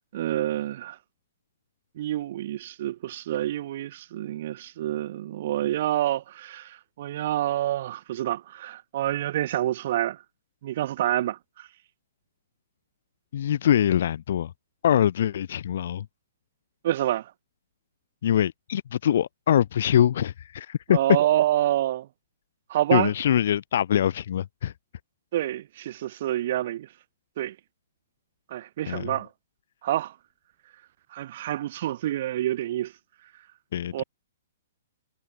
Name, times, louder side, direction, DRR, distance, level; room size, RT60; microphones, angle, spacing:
voice 1, 0.1-1.0 2.0-10.2 10.6-11.7 16.8-17.3 20.9-22.1 22.7-23.1 25.3-26.9 27.4-27.5 28.5-29.3 29.8-30.1 31.1-32.9 33.9-34.0, right 13 dB, 55° right, 1.4 m, -27 dB
voice 2, 13.3-14.5 14.8-16.1 18.2-21.0 22.9-24.7 28.9-29.2 33.7-34.0, left 10 dB, 65° left, 2.4 m, -23 dB
hypercardioid pair, 140°, 0 cm